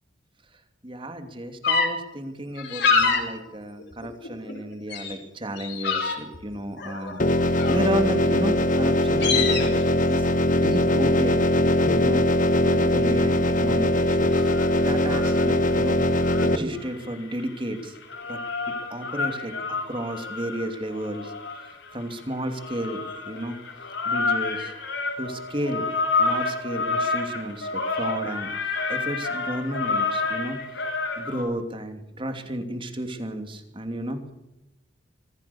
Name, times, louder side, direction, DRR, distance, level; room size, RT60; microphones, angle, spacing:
voice 1, 0.8-9.8 10.1-11.4 11.9-12.3 12.6-14.5 14.8-18.0 18.3-18.4 18.7-21.3 21.9-23.6 24.0-24.7 25.2-25.9 26.2-30.6 31.2-34.3, right 1 dB, 25° right, 7 dB, 2.8 m, -33 dB
sound 1, 1.6-1.9 2.6-3.2 3.8-4.6 4.9-5.1 5.6-6.4 6.8-8.0 8.5-8.6 8.9-9.7, left 5 dB, 60° left, 5.0 m, -25 dB
sound 2, 7.2-16.6, left 1 dB, 45° left, 1.3 m, -21 dB
sound 3, 14.2-15.7 16.1-31.4, left 3 dB, 80° left, 6.8 m, -29 dB
25.5 x 16.0 x 7.1 m, 0.92 s
head